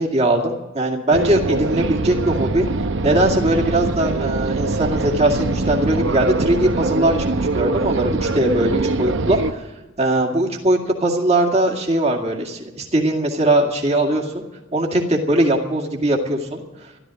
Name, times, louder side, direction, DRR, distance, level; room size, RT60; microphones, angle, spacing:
voice 1, 0.0-2.7 3.0-9.7 10.0-14.4 14.7-16.6, right 1 dB, 35° right, 1 dB, 2.1 m, -20 dB
sound 1, 1.1-9.5, right 3 dB, 65° right, 0.8 m, -23 dB
14.0 x 12.5 x 7.6 m, 1.1 s
head